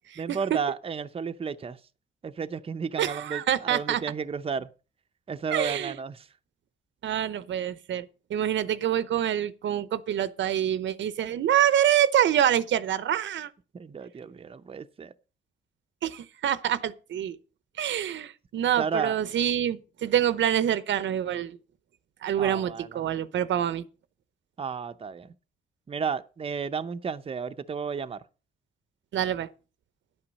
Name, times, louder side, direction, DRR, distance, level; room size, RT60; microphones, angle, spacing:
voice 1, 0.2-1.8 2.2-4.7 5.3-6.3 13.7-15.1 18.8-19.2 22.4-23.1 24.6-25.3 25.9-28.2, right 6 dB, 30° right, 0.6 m, -33 dB
voice 2, 3.0-4.0 5.5-6.0 7.0-13.5 16.0-17.4 17.8-21.6 22.2-23.8 29.1-29.5, right 10 dB, 80° right, 0.8 m, -26 dB
10.5 x 8.8 x 5.3 m
cardioid pair, 105°, 19 cm